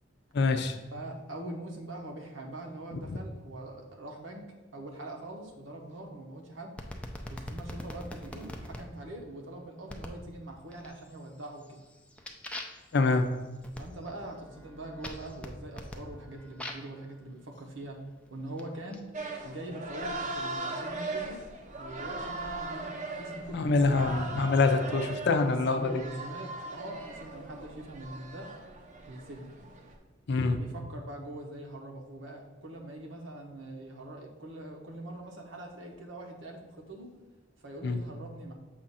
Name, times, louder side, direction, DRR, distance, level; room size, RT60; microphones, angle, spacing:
voice 1, 0.3-0.7 2.9-3.0 12.9-13.3 23.5-26.0 30.3-30.6 37.8-38.0, left 3 dB, 60° left, 7 dB, 0.5 m, -25 dB
voice 2, 0.9-6.8 7.3-11.8 13.8-18.0 18.3-19.1 19.4-21.4 21.8-23.9 24.9-25.1 25.4-28.5 29.0-29.5 30.5-37.1 37.6-38.5, right 1 dB, 75° right, 1 dB, 1.0 m, -43 dB
sound 1, 6.8-8.8 9.9-10.2 10.7-11.2 11.6-17.0 17.8-19.0, left 1 dB, 5° left, 0.4 m, -43 dB
sound 2, 19.1-30.0, right 2 dB, 40° right, 0.6 m, -39 dB
6.8 x 2.5 x 5.5 m, 1.2 s
head